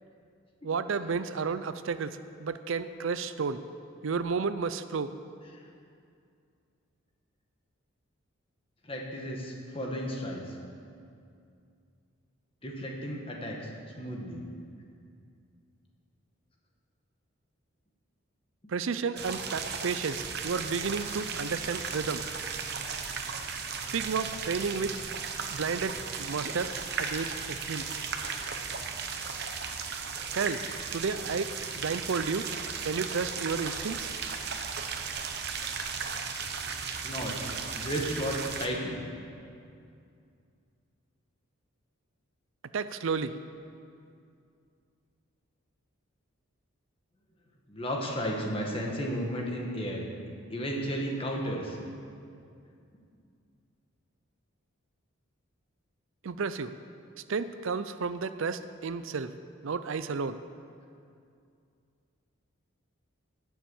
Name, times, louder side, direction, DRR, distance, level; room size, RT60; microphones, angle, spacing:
voice 1, 0.6-3.6 4.0-5.1 18.7-22.2 23.9-25.0 25.5-27.9 30.3-30.6 30.9-32.5 32.8-34.1 42.7-43.4 56.2-56.7 57.3-59.3 59.6-60.4, right 5 dB, 70° right, 12 dB, 0.5 m, -32 dB
voice 2, 8.8-10.6 12.6-13.7 14.0-14.4 36.0-36.2 37.0-37.5 37.7-39.0 47.7-50.1 50.5-51.8, equal, 25° left, -1 dB, 1.8 m, -33 dB
sound 1, 19.2-38.7, right 5 dB, 50° right, 1.0 m, -36 dB
18.0 x 7.2 x 7.2 m, 2.4 s
head